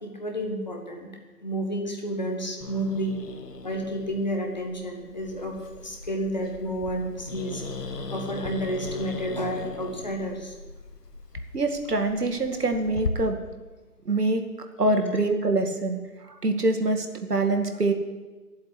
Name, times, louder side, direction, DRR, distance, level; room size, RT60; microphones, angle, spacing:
voice 1, 0.0-1.1 1.4-3.2 3.6-7.6 8.1-10.5, equal, 25° left, 1 dB, 1.5 m, -31 dB
Growling, 2.6-13.1, left 3 dB, 85° left, 1.5 m, -38 dB
voice 2, 11.5-13.4 14.1-14.4 14.8-16.0 16.2-17.9, right 2 dB, 75° right, 5 dB, 2.2 m, -24 dB
11.5 x 8.0 x 9.8 m, 1.3 s
hypercardioid pair, 175°, 47 cm